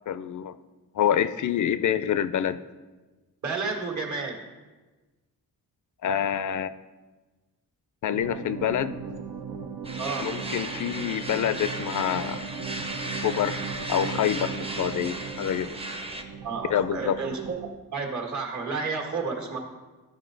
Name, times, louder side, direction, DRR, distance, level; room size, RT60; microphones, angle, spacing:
voice 1, 0.1-0.6 0.9-2.6 6.0-6.7 8.0-9.0 10.2-12.4 13.2-13.6 13.9-15.8 16.7-17.1, left 9 dB, 55° left, 13 dB, 0.4 m, -26 dB
voice 2, 3.4-4.4 10.0-10.4 16.4-17.4 17.9-19.6, right 4 dB, 50° right, 1 dB, 1.7 m, -31 dB
sound 1, 8.1-17.7, right 5 dB, 80° right, 0.8 m, -37 dB
sound 2, 9.8-16.2, right 2 dB, 15° right, 0.7 m, -36 dB
13.5 x 4.8 x 3.9 m, 1.2 s
wide cardioid pair, 130°, 36 cm